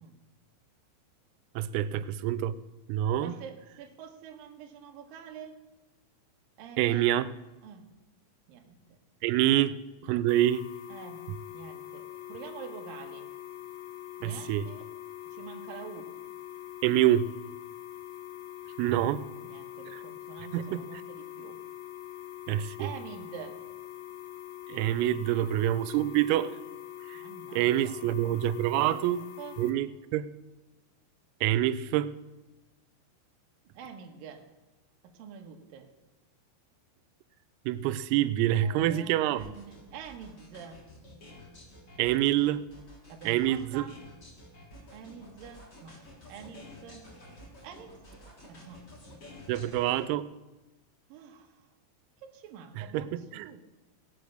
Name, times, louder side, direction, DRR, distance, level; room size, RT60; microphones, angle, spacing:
voice 1, 1.6-2.6 2.9-3.4 6.8-7.2 9.2-9.8 10.1-10.6 14.2-14.7 16.8-17.3 18.8-19.2 20.5-20.8 22.5-22.9 24.7-26.5 27.1-27.2 27.5-29.2 29.6-30.3 31.4-32.1 37.7-39.4 42.0-42.6 43.3-43.8 49.5-50.3 52.9-53.5, right 13 dB, 90° right, 15 dB, 3.3 m, -26 dB
voice 2, 3.2-5.5 6.6-7.1 7.6-7.8 8.5-9.0 9.5-9.7 10.9-11.2 11.5-13.3 14.2-14.9 15.3-16.1 18.9-19.0 19.4-21.6 22.8-23.6 27.1-28.0 28.7-29.6 33.7-34.4 35.0-35.9 38.6-40.8 43.1-44.0 44.9-46.0 46.3-47.1 47.6-47.9 48.4-48.8 51.1-51.7 52.2-53.6, right 7 dB, 65° right, 2 dB, 2.3 m, -46 dB
sound 1, 10.3-29.7, left 12 dB, 75° left, 3.0 m, -44 dB
sound 2, 39.4-50.0, left 1 dB, 25° left, 2.7 m, -51 dB
18.0 x 8.5 x 6.5 m, 1.1 s
omnidirectional pair, 5.9 m